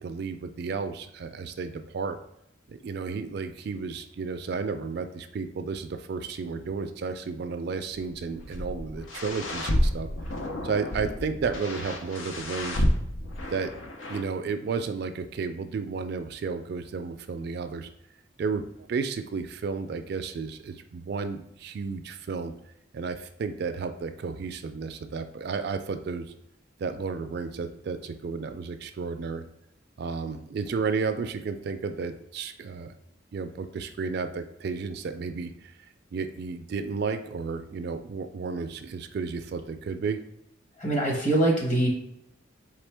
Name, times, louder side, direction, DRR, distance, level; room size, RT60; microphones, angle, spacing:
voice 1, 0.0-2.2 2.7-10.1 10.6-12.9 13.5-13.7 14.1-17.9 18.4-22.5 22.9-26.3 26.8-29.4 30.0-32.9 33.3-35.7 36.1-40.2, right 5 dB, 55° right, 8 dB, 0.3 m, -32 dB
sound 1, 7.9-14.2, left 1 dB, 85° left, 0.7 m, -30 dB
voice 2, 40.8-41.9, right 1 dB, 40° left, -1 dB, 1.2 m, -23 dB
4.3 x 3.2 x 3.3 m, 0.81 s
head